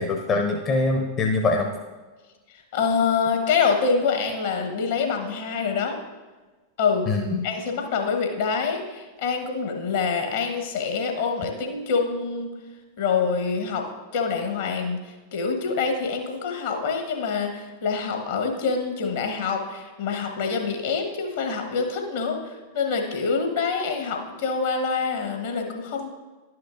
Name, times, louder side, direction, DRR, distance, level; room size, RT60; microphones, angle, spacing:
voice 1, 0.0-1.7 7.1-7.5, left 3 dB, 30° left, 3 dB, 0.6 m, -23 dB
voice 2, 2.5-6.0 6.8-7.1 7.4-12.5 13.0-13.9 14.1-26.1, left 5 dB, 55° left, 3 dB, 1.1 m, -26 dB
11.0 x 5.9 x 2.5 m, 1.3 s
figure-of-eight pair, 90°, 0 cm